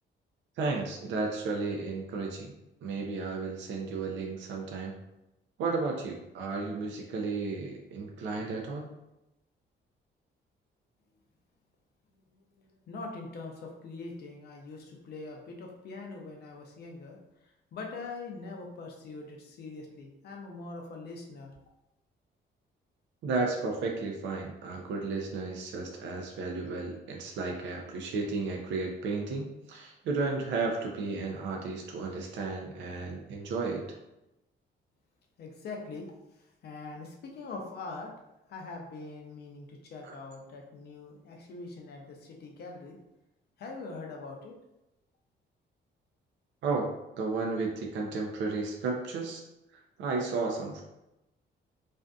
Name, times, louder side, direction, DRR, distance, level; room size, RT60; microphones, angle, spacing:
voice 1, 0.6-2.5 2.8-5.0 5.6-8.9 23.2-33.8 40.1-40.2 46.6-46.9 47.2-49.4 50.0-50.8, right 3 dB, 70° right, 1 dB, 0.4 m, -33 dB
voice 2, 12.1-21.5 35.4-38.1 38.5-43.0 43.6-44.5, left 3 dB, 55° left, 1 dB, 0.5 m, -43 dB
2.5 x 2.5 x 2.2 m, 0.93 s
cardioid pair, 150°, 19 cm